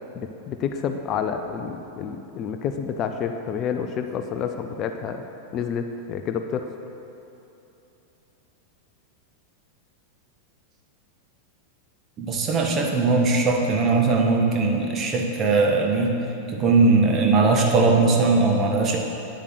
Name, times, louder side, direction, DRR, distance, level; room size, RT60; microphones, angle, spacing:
voice 1, 0.1-5.2 5.5-6.7, left 7 dB, 35° left, 7 dB, 0.5 m, -29 dB
voice 2, 12.2-16.1 16.5-19.0, right 3 dB, 30° right, 1 dB, 1.5 m, -20 dB
9.1 x 8.4 x 6.5 m, 3.0 s
figure-of-eight pair, 90°, 0 cm